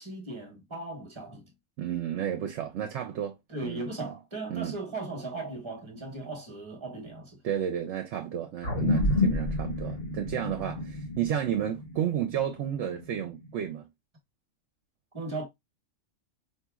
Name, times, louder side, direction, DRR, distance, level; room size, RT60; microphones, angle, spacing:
voice 1, 0.0-1.5 3.5-7.4 9.1-9.4 15.1-15.5, right 2 dB, 25° right, 1.0 m, -37 dB
voice 2, 1.8-3.4 3.6-4.1 4.5-4.7 7.4-13.9, right 10 dB, 70° right, 0.9 m, -32 dB
sound 1, 8.6-13.4, left 2 dB, 65° left, 1.5 m, -29 dB
4.0 x 2.8 x 2.3 m
omnidirectional pair, 1.4 m